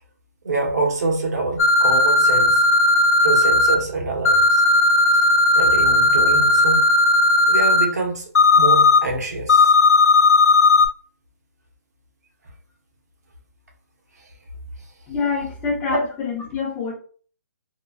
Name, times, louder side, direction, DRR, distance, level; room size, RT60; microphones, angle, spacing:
voice 1, 0.4-2.6 3.2-4.6 5.5-6.8 7.5-8.3 8.6-9.7 15.9-16.0, right 3 dB, 80° right, 0 dB, 1.2 m, -25 dB
sound 1, 1.6-3.7 4.2-7.9 8.3-9.0 9.5-10.9, left 2 dB, 70° left, 0.5 m, -15 dB
voice 2, 15.1-16.9, left 5 dB, 10° left, -3 dB, 0.6 m, -26 dB
3.0 x 2.3 x 2.3 m, 0.43 s
hypercardioid pair, 165°, 9 cm